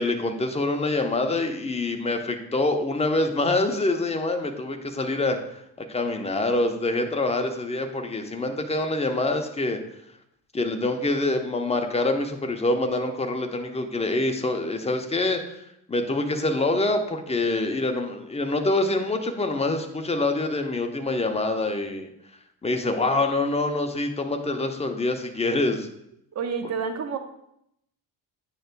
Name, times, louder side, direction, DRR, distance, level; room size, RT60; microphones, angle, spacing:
voice 1, 0.0-5.6 5.9-9.8 10.5-15.6 15.9-22.1 22.6-25.9, left 2 dB, 10° left, 4 dB, 0.9 m, -25 dB
voice 2, 26.3-27.2, right 6 dB, 30° right, 7 dB, 0.9 m, -29 dB
8.9 x 5.8 x 2.3 m, 0.77 s
figure-of-eight pair, 50°, 50 cm